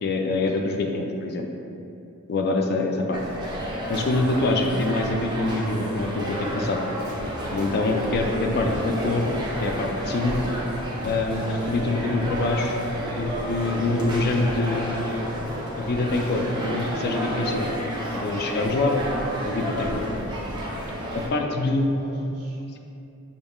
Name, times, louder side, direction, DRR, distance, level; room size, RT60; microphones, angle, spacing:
voice 1, 0.0-1.5 2.3-3.2 3.9-6.8 7.5-9.3 9.6-10.4 11.0-12.8 13.2-14.9 15.7-17.7 18.1-19.0 19.4-20.1 21.1-21.9, left 2 dB, 45° left, 3 dB, 0.4 m, -25 dB
sound 1, 3.1-21.3, equal, 20° right, 0.7 m, -31 dB
voice 2, 18.3-18.8 21.3-22.6, equal, 75° right, -4 dB, 1.0 m, -41 dB
6.3 x 3.6 x 2.3 m, 2.7 s
head